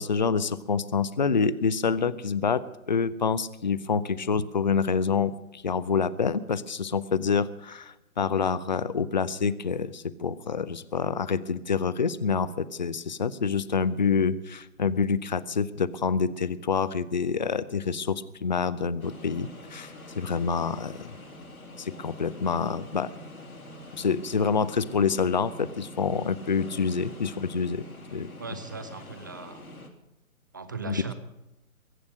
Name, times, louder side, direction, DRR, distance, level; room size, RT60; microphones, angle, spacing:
voice 1, 0.0-21.1 21.8-23.1 23.9-27.8 28.1-28.3 30.9-31.1, left 5 dB, 35° left, 17 dB, 0.5 m, -27 dB
sound 1, 19.0-29.9, left 2 dB, 85° left, 2.8 m, -45 dB
voice 2, 28.4-29.6 30.5-31.1, right 4 dB, 15° right, 11 dB, 0.5 m, -38 dB
22.5 x 8.2 x 6.3 m, 0.95 s
figure-of-eight pair, 140°, 43 cm